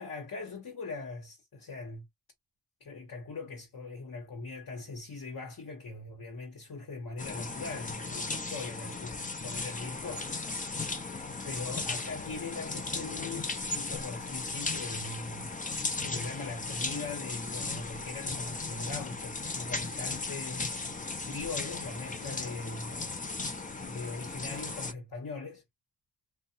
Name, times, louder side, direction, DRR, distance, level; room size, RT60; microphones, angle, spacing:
voice 1, 0.0-2.0 2.8-10.4 11.4-15.5 15.9-23.2 23.8-25.6, left 3 dB, 60° left, 0.8 m, -41 dB
sound 1, 7.2-24.9, left 3 dB, 20° left, 0.4 m, -36 dB
2.6 x 2.1 x 2.7 m
wide cardioid pair, 80°, 39 cm